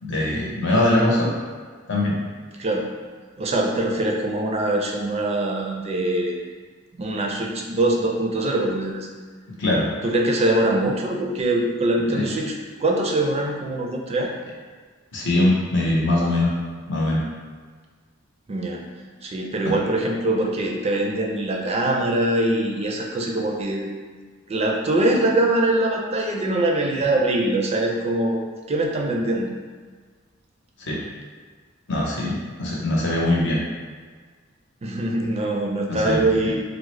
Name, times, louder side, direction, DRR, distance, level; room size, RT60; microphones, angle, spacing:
voice 1, 0.0-1.3 1.9-2.1 9.6-9.9 12.1-12.3 15.1-16.5 16.9-17.2 19.6-19.7 30.8-31.0 31.9-33.6 35.9-36.5, left 1 dB, 65° left, -4 dB, 0.8 m, -22 dB
voice 2, 3.4-6.4 7.0-9.1 10.0-12.5 12.8-14.3 18.5-18.8 19.2-23.9 24.5-28.4 28.7-29.5 34.8-36.6, right 1 dB, 30° right, 0 dB, 0.4 m, -23 dB
3.6 x 2.0 x 3.1 m, 1.5 s
head